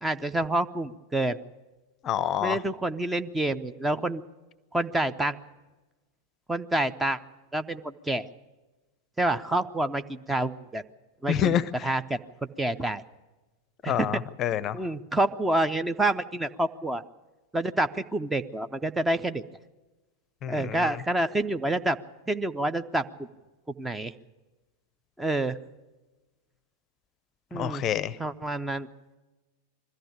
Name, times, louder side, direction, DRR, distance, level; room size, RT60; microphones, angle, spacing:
voice 1, 0.0-1.4 2.4-4.2 4.7-5.4 6.5-7.2 7.5-8.3 9.2-10.8 11.2-12.2 12.6-13.0 13.8-14.2 14.7-17.0 17.5-19.4 20.5-22.0 22.3-23.3 23.8-24.1 25.2-25.6 27.5-27.8 28.2-28.9, right 1 dB, 10° right, 11 dB, 0.6 m, -28 dB
voice 2, 2.0-2.6 11.3-11.6 13.9-14.8 20.4-20.9 27.5-28.1, left 10 dB, 30° left, 20 dB, 0.6 m, -27 dB
21.5 x 14.5 x 8.7 m, 1.2 s
figure-of-eight pair, 90°, 0 cm